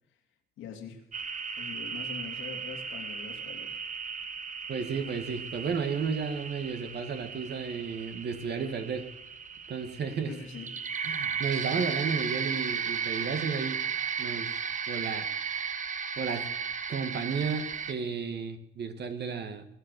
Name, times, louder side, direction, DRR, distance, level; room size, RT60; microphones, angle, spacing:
voice 1, 0.6-1.0 1.6-3.8 10.3-10.7, left 6 dB, 85° left, 2 dB, 2.9 m, -43 dB
sound 1, 1.1-17.9, right 6 dB, 40° right, 1.3 m, -35 dB
voice 2, 4.7-9.1 9.7-10.3 11.0-13.8 14.2-14.5 14.9-15.3 16.2-16.5 16.9-19.7, right 5 dB, 55° right, 8 dB, 1.6 m, -33 dB
21.0 x 7.8 x 6.8 m, 0.84 s
cardioid pair, 90°, 20 cm